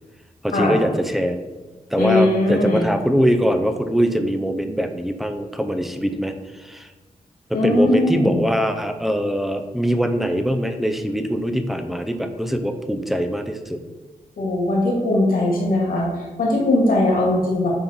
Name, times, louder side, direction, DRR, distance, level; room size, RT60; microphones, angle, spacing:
voice 1, 0.4-1.5 1.9-6.9 7.5-13.8, equal, ahead, 7 dB, 0.7 m, -22 dB
voice 2, 2.0-2.9 7.5-8.5 14.4-17.7, left 1 dB, 80° left, -3 dB, 2.3 m, -20 dB
9.2 x 3.9 x 4.3 m, 1.2 s
cardioid pair, 70°, 15 cm